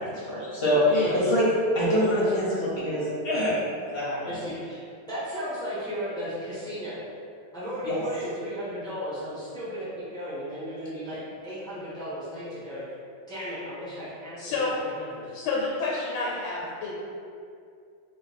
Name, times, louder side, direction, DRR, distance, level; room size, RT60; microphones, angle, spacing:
voice 1, 0.0-3.6 3.9-4.4 7.8-8.0, equal, 40° left, -8 dB, 1.0 m, -25 dB
voice 2, 4.3-4.8 5.1-7.0 7.5-12.8 13.3-14.5 14.8-15.3, equal, 5° left, -11 dB, 0.6 m, -35 dB
voice 3, 14.4-14.7 15.3-17.0, left 3 dB, 90° left, -4 dB, 1.4 m, -29 dB
3.2 x 3.1 x 4.0 m, 2.3 s
omnidirectional pair, 2.2 m